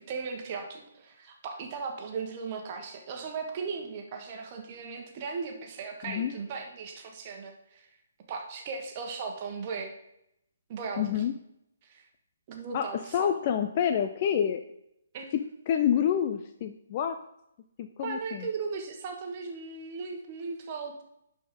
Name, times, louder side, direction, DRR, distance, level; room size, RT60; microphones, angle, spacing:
voice 1, 0.1-7.9 8.3-9.9 10.7-11.1 11.8-12.1 12.5-13.3 15.1-15.3 18.0-21.0, right 5 dB, 35° right, 3 dB, 1.3 m, -37 dB
voice 2, 11.0-11.3 12.7-14.6 15.7-17.2 17.8-18.5, left 9 dB, 40° left, 7 dB, 0.4 m, -28 dB
11.0 x 4.2 x 3.8 m, 0.80 s
figure-of-eight pair, 140°, 0 cm